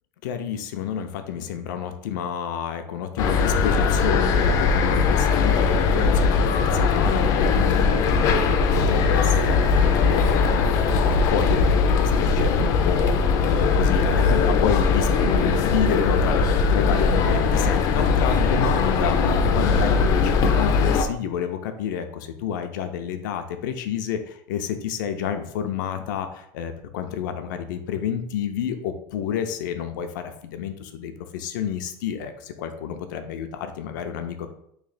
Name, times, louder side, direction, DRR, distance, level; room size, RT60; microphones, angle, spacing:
voice 1, 0.2-34.5, left 8 dB, 90° left, 7 dB, 0.5 m, -29 dB
sound 1, 3.2-21.1, left 5 dB, 35° left, 0.4 m, -20 dB
3.2 x 2.8 x 4.0 m, 0.71 s
cardioid pair, 170°, 10 cm